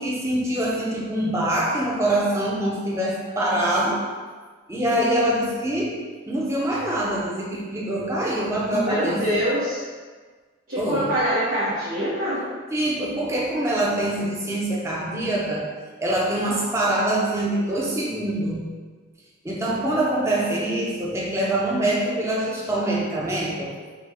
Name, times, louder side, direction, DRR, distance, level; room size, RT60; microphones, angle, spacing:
voice 1, 0.0-4.0 4.7-6.0 6.3-9.4 10.8-11.1 12.7-15.7 16.0-18.6 19.4-23.7, right 1 dB, 15° right, -4 dB, 0.7 m, -24 dB
voice 2, 8.7-9.8 10.7-12.4, equal, 75° right, -11 dB, 1.1 m, -24 dB
5.0 x 2.3 x 3.4 m, 1.5 s
head